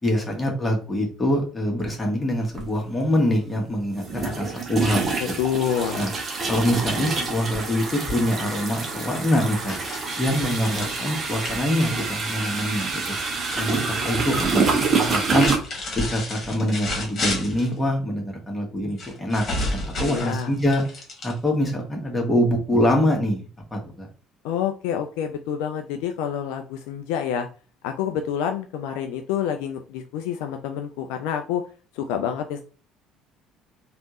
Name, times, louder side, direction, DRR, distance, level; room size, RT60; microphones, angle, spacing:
voice 1, 0.0-5.3 6.0-6.1 6.4-9.8 10.2-13.2 13.5-15.5 15.9-19.4 19.7-20.8 21.2-23.4 23.7-24.1, equal, 15° left, 0 dB, 1.3 m, -24 dB
sound 1, 2.5-2.7 4.0-15.6, right 4 dB, 35° right, 0.9 m, -27 dB
voice 2, 5.4-6.0 20.0-20.5 24.4-27.5 27.8-31.6 31.9-32.6, left 9 dB, 65° left, 5 dB, 0.3 m, -27 dB
sound 2, 9.7-13.6 13.9-14.5 15.0-17.7 19.0-21.7, left 2 dB, 40° left, 1.4 m, -31 dB
3.3 x 2.5 x 2.9 m, 0.36 s
figure-of-eight pair, 55°, 0 cm